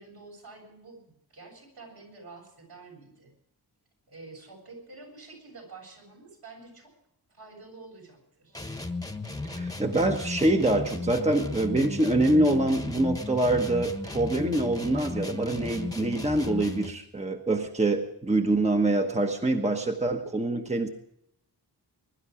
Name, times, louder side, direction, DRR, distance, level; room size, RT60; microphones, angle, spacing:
voice 1, 0.0-3.3 4.1-6.9 7.3-8.6, right 3 dB, 65° right, -1 dB, 7.7 m, -48 dB
sound 1, 8.5-17.0, left 2 dB, 10° left, 1.3 m, -35 dB
voice 2, 9.4-20.9, right 2 dB, 15° right, 3 dB, 1.2 m, -25 dB
22.0 x 12.0 x 4.9 m, 0.76 s
wide cardioid pair, 120°, 40 cm